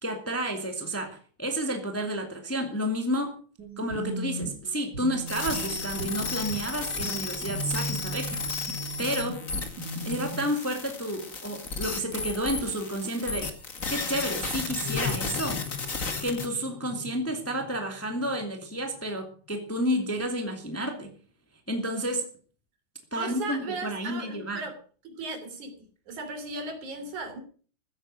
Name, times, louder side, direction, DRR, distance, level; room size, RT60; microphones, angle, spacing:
voice 1, 0.0-3.3 3.8-8.4 9.0-9.4 10.0-13.5 13.9-15.6 16.2-21.1 21.7-22.3 23.1-24.6, equal, 5° left, 4 dB, 1.9 m, -31 dB
sound 1, 3.6-10.4, right 1 dB, 35° right, 2.2 m, -37 dB
sound 2, 5.3-16.5, left 4 dB, 30° left, 2.0 m, -34 dB
sound 3, 13.8-19.2, left 8 dB, 75° left, 1.1 m, -39 dB
voice 2, 23.2-24.7 25.0-25.8 26.1-27.4, right 3 dB, 75° right, 6 dB, 4.6 m, -36 dB
15.5 x 9.8 x 6.3 m, 0.42 s
omnidirectional pair, 3.4 m